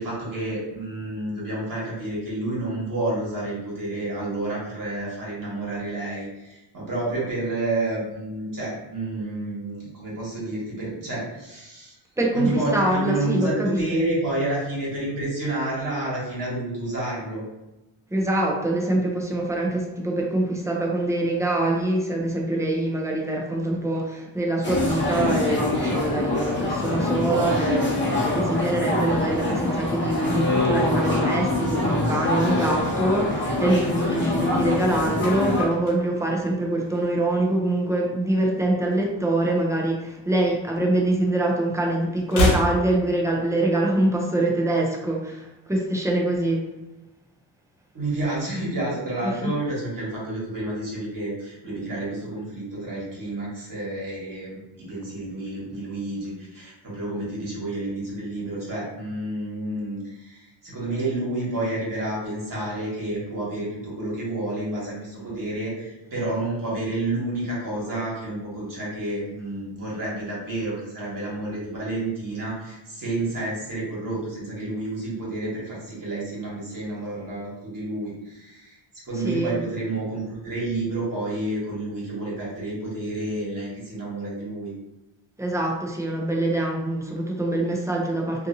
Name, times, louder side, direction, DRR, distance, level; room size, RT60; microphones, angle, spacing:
voice 1, 0.0-11.9 12.3-17.4 47.9-78.8 79.0-84.7, right 2 dB, 40° right, -6 dB, 1.5 m, -30 dB
voice 2, 12.2-13.8 18.1-46.7 49.2-49.5 79.2-79.6 85.4-88.5, right 1 dB, 5° right, -1 dB, 0.5 m, -24 dB
sound 1, 24.6-35.6, left 2 dB, 25° left, 0.8 m, -24 dB
sound 2, 35.1-37.5 37.8-38.1 38.3-39.8 40.1-41.4 41.7-43.8 44.1-44.2, left 1 dB, 80° left, 0.8 m, -30 dB
2.7 x 2.5 x 2.6 m, 1.0 s
cardioid pair, 95°, 47 cm